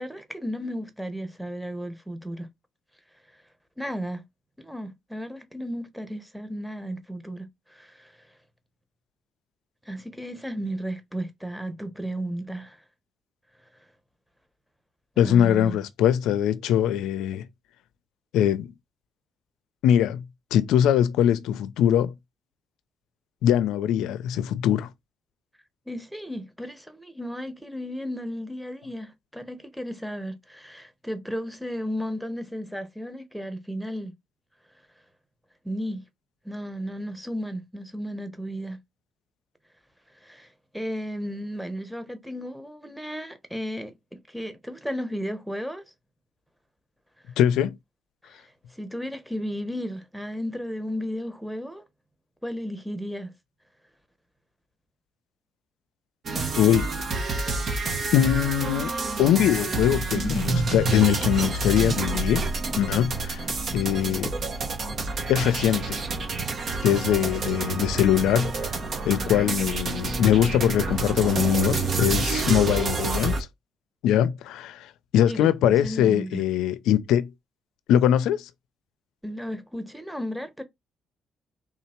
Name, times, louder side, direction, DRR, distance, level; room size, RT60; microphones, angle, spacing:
voice 1, 0.0-2.5 3.8-4.2 4.6-8.1 9.9-12.8 15.2-15.8 25.9-34.1 35.6-36.0 36.4-38.8 40.2-40.5 40.7-45.8 48.2-51.9 52.4-53.3 75.3-76.4 79.2-80.6, equal, ahead, 1.1 m, -34 dB
voice 2, 15.2-17.4 18.3-18.7 19.8-20.2 20.5-22.1 23.4-24.9 47.4-47.7 56.6-56.9 57.9-58.9 59.2-62.5 62.8-63.4 63.7-64.3 65.3-66.0 66.8-68.7 69.0-73.3 74.0-77.3 77.9-78.5, left 10 dB, 90° left, 0.5 m, -22 dB
sound 1, 56.2-73.4, right 3 dB, 55° right, 1.1 m, -28 dB
3.7 x 2.8 x 4.4 m
cardioid pair, 90°, 0 cm